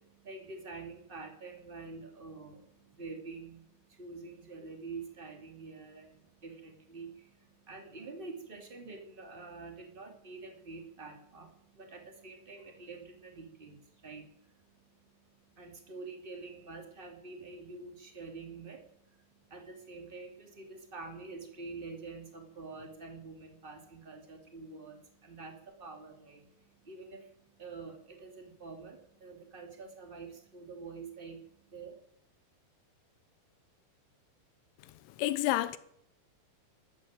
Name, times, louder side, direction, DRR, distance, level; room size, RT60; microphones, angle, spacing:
voice 1, 0.0-31.9, right 4 dB, 20° right, 1.4 m, -47 dB
voice 2, 35.2-35.8, left 15 dB, 85° left, 3.4 m, -29 dB
13.0 x 12.5 x 8.9 m
omnidirectional pair, 5.6 m